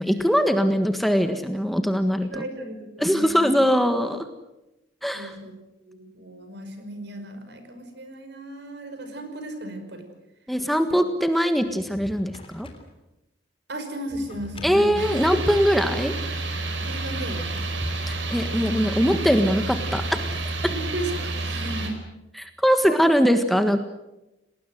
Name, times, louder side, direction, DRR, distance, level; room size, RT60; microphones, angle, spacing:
voice 1, 0.0-2.4 3.0-4.3 5.0-5.3 10.5-12.7 14.6-16.1 18.1-20.2 20.6-20.7 22.3-23.8, equal, ahead, 7 dB, 1.5 m, -21 dB
voice 2, 2.2-3.6 5.1-5.5 5.9-10.1 13.7-15.1 16.8-17.6 20.7-22.0 22.9-23.0, right 1 dB, 60° right, 7 dB, 5.5 m, -35 dB
Drawer open or close, 11.6-12.9 14.1-15.7 17.1-18.4 19.7-21.4, equal, 30° left, 3.6 m, -42 dB
sound 1, 15.0-21.9, right 2 dB, 80° right, 5.0 m, -29 dB
29.5 x 19.5 x 7.8 m, 0.94 s
head